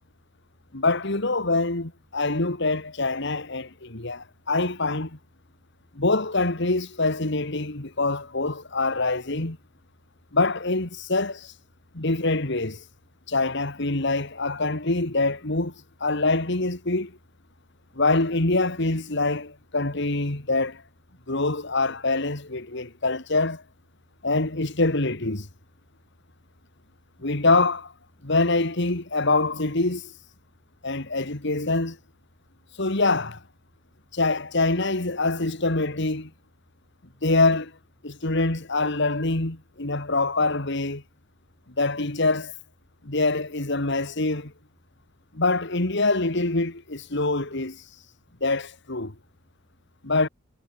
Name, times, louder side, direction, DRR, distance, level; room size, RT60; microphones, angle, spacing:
voice 1, 0.7-5.2 5.9-9.6 10.3-11.5 11.9-12.8 13.3-15.7 16.0-17.2 17.9-20.8 21.3-23.6 24.2-25.5 27.2-27.9 28.2-30.1 30.8-32.0 32.8-33.4 34.1-36.3 37.2-37.7 38.0-41.0 41.8-42.5 43.0-44.5 45.3-47.8 48.4-49.1 50.0-50.3, left 3 dB, 60° left, 2.4 m, -25 dB
head